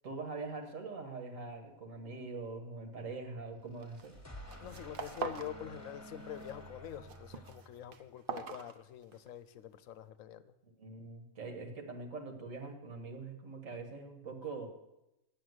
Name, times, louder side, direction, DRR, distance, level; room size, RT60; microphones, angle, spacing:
voice 1, 0.0-4.2 10.6-14.7, right 3 dB, 70° right, 4 dB, 1.9 m, -43 dB
sound 1, 3.6-8.1, equal, 15° left, 1.2 m, -51 dB
sound 2, 3.8-4.1 4.4-5.6 5.9-6.5 6.8-9.3, right 6 dB, 50° right, 0.8 m, -43 dB
voice 2, 4.6-10.5, left 10 dB, 80° left, 14 dB, 1.0 m, -46 dB
8.8 x 7.1 x 7.9 m, 0.91 s
omnidirectional pair, 1.4 m